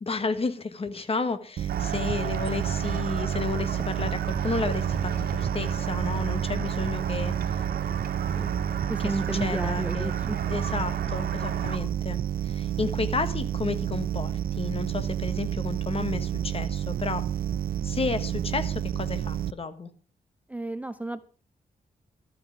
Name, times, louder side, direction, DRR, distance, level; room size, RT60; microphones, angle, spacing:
voice 1, 0.0-7.7 8.3-8.5 9.0-10.1 10.5-12.2 12.4-17.2 17.8-19.9, left 4 dB, 40° left, 10 dB, 1.4 m, -32 dB
sound 1, 1.6-19.5, right 10 dB, 70° right, 0.5 m, -30 dB
sound 2, 1.7-11.8, right 6 dB, 85° right, 1.8 m, -34 dB
voice 2, 8.9-10.4 20.5-21.2, right 1 dB, 10° right, 12 dB, 0.5 m, -32 dB
13.0 x 9.2 x 5.2 m, 0.40 s
wide cardioid pair, 115°, 16 cm